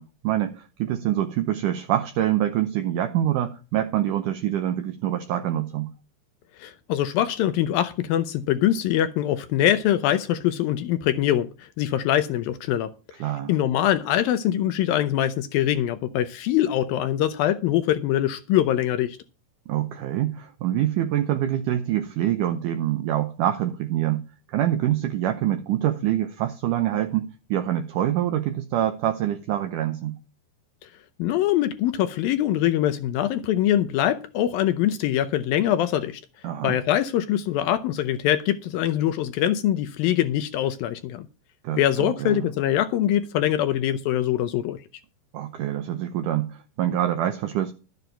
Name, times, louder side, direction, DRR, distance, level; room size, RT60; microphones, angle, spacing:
voice 1, 0.0-5.9 13.2-13.5 19.7-30.2 36.4-36.8 41.6-42.5 45.3-47.7, right 12 dB, 85° right, 1.8 m, -25 dB
voice 2, 6.6-12.9 13.5-19.2 31.2-36.2 36.6-41.3 41.7-44.8, left 12 dB, 75° left, 2.3 m, -23 dB
12.5 x 9.2 x 4.5 m
omnidirectional pair, 4.7 m